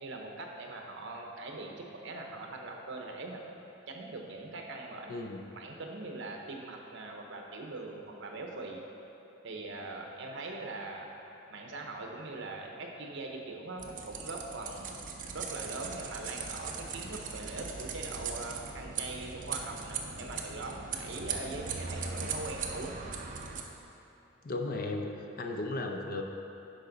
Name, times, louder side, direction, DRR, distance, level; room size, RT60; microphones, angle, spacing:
voice 1, 0.0-3.4 3.9-5.3 5.6-8.8 9.4-11.1 11.5-14.9 15.3-23.0, right 2 dB, 60° right, 1 dB, 0.9 m, -41 dB
voice 2, 5.1-5.4 24.4-25.1 25.4-26.2, left 2 dB, 45° left, 3 dB, 0.6 m, -35 dB
sound 1, 13.8-23.6, right 5 dB, 40° right, 0.6 m, -39 dB
10.5 x 5.3 x 4.0 m, 2.9 s
head